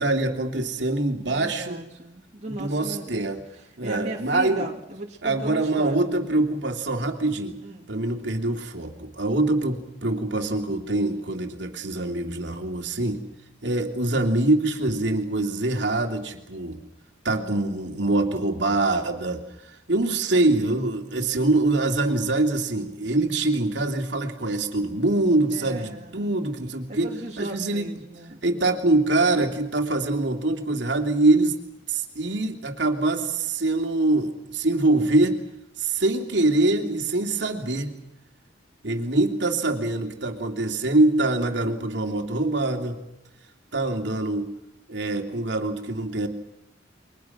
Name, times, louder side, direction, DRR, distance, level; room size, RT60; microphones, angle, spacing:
voice 1, 0.0-1.8 2.5-3.4 3.8-4.7 5.2-7.6 7.9-13.2 13.6-16.8 17.2-27.1 27.4-28.0 28.4-31.5 31.9-35.4 35.8-37.9 38.8-43.0 43.7-44.5 44.9-46.3, right 2 dB, 70° right, 3 dB, 2.8 m, -24 dB
voice 2, 1.2-3.2 3.5-6.1 7.6-7.9 17.3-18.3 25.5-26.3 26.9-28.4, right 1 dB, 35° right, 0 dB, 2.6 m, -37 dB
30.0 x 23.5 x 6.0 m, 0.84 s
head